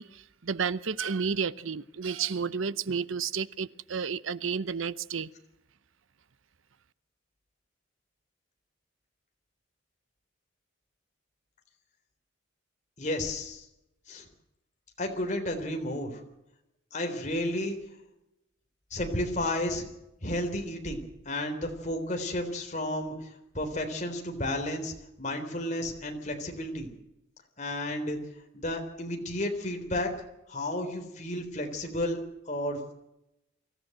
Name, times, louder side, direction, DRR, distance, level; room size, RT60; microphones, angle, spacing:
voice 1, 0.0-5.3, right 6 dB, 75° right, 0.7 m, -31 dB
voice 2, 13.0-13.6 14.1-14.3 15.0-16.2 16.9-17.8 18.9-19.9 20.2-23.2 23.5-26.9 27.6-28.2 28.5-30.1 30.5-32.2 32.5-32.9, left 1 dB, 35° left, 3.6 m, -32 dB
24.5 x 14.5 x 7.8 m
head